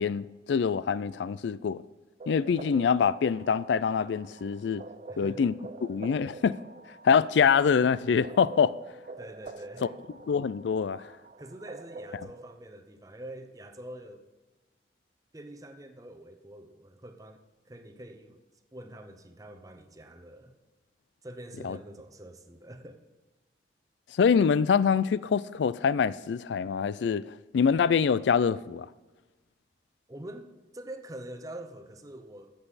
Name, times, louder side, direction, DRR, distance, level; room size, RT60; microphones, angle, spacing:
voice 1, 0.0-1.8 2.3-4.8 5.2-5.5 5.8-6.5 7.0-8.7 10.3-11.0 21.6-21.8 24.2-27.2 27.5-28.9, left 6 dB, 75° left, 0.3 m, -25 dB
sound 1, 2.2-12.5, right 3 dB, 40° right, 0.4 m, -46 dB
voice 2, 5.1-5.5 9.2-10.0 11.4-14.2 15.3-18.4 18.7-20.6 21.2-23.0 30.1-32.5, right 1 dB, 20° right, 0.8 m, -45 dB
14.0 x 7.9 x 4.1 m
head